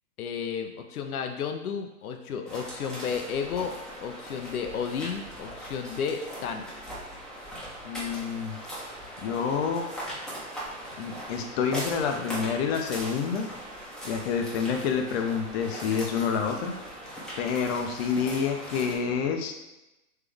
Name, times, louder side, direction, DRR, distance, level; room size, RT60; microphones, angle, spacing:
voice 1, 0.2-6.7, left 6 dB, 90° left, 5 dB, 0.6 m, -33 dB
sound 1, 2.5-19.0, equal, ahead, 1.1 m, -40 dB
voice 2, 7.8-8.6 9.2-9.8 11.0-13.5 14.0-16.7 17.4-19.5, left 6 dB, 45° left, 4 dB, 0.6 m, -28 dB
3.6 x 3.2 x 3.4 m, 0.94 s
hypercardioid pair, 130°, 43 cm